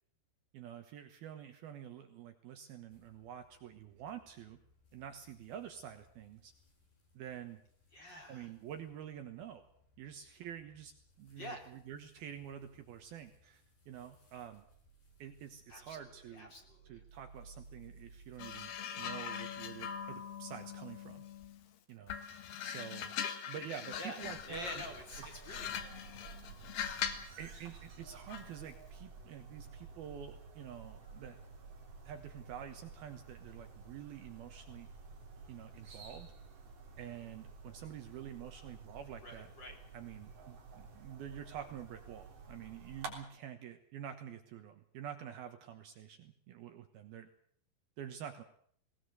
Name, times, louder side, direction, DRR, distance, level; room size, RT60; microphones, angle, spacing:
voice 1, 0.5-4.6 4.9-6.5 7.1-7.6 8.3-9.6 10.0-10.9 11.2-14.7 15.2-16.5 16.8-21.2 21.9-22.2 22.6-23.1 23.5-24.8 25.2-25.3 27.4-31.4 32.1-34.9 35.5-36.3 37.0-39.5 39.9-47.3 48.0-48.4, right 9 dB, 70° right, 7 dB, 2.8 m, -48 dB
sound 1, 2.9-21.7, right 2 dB, 50° left, 7.7 m, -63 dB
voice 2, 7.9-8.5 11.4-11.6 15.7-16.0 16.3-17.0 24.0-24.2 24.5-25.9 39.2-39.8, left 1 dB, 25° left, 2 dB, 3.3 m, -47 dB
sound 2, 18.4-21.6 22.1-27.4 28.3-28.6, left 8 dB, 70° left, 3.3 m, -42 dB
sound 3, 24.2-43.1, right 4 dB, 50° right, 5.1 m, -52 dB
19.5 x 19.0 x 8.0 m, 0.62 s
omnidirectional pair, 5.1 m